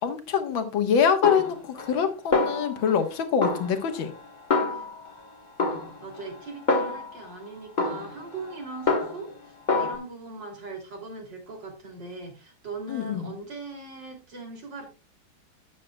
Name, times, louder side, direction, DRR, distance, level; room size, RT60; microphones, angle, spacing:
voice 1, 0.0-4.1 12.9-13.3, left 7 dB, 65° left, 7 dB, 2.1 m, -25 dB
Snare drum, 1.2-2.1 2.3-3.1 3.4-5.2 5.6-7.3 7.8-9.4 9.7-10.0, left 3 dB, 25° left, 1.1 m, -27 dB
voice 2, 6.0-14.9, right 3 dB, 55° right, 3 dB, 3.5 m, -40 dB
12.0 x 9.4 x 2.3 m, 0.31 s
omnidirectional pair, 2.4 m